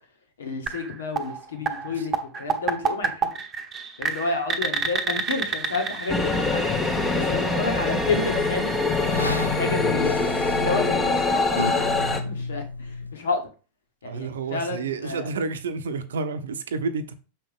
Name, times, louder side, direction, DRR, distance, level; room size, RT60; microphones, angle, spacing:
voice 1, 0.4-3.3 4.0-6.6 7.1-8.7 9.2-11.6 12.1-13.5 14.0-15.3, left 4 dB, 65° left, 1.9 m, -30 dB
sound 1, 0.7-10.5, right 6 dB, 20° right, 1.1 m, -31 dB
sound 2, 6.1-12.2, left 3 dB, 20° left, 1.2 m, -24 dB
sound 3, 6.9-13.2, left 2 dB, 85° left, 0.3 m, -33 dB
voice 2, 7.2-7.7 14.0-17.1, right 4 dB, 65° right, 0.9 m, -30 dB
7.0 x 5.7 x 3.6 m
figure-of-eight pair, 90°, 0 cm